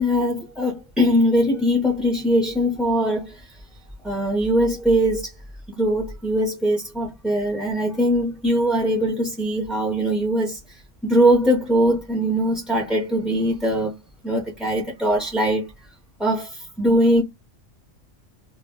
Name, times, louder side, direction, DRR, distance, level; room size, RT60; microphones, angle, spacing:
voice 1, 0.0-3.4 4.0-5.3 5.7-13.9 14.2-15.7 16.2-17.2, equal, ahead, 0.3 m, -21 dB
2.2 x 2.0 x 3.5 m
omnidirectional pair, 1.3 m